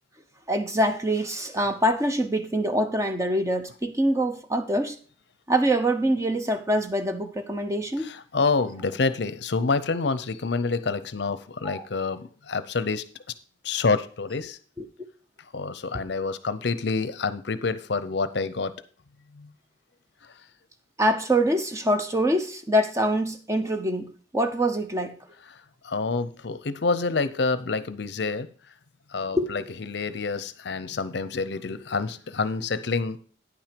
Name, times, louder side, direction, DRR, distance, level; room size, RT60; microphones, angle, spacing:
voice 1, 0.5-5.0 5.5-8.1 11.6-11.9 14.8-14.9 15.9-16.0 21.0-25.2 29.3-29.5, right 1 dB, 15° right, 0.7 m, -24 dB
voice 2, 8.0-13.0 13.6-14.6 15.5-18.7 19.4-19.5 25.8-28.5 29.1-33.2, left 4 dB, 60° left, 0.6 m, -27 dB
9.7 x 6.0 x 5.1 m
head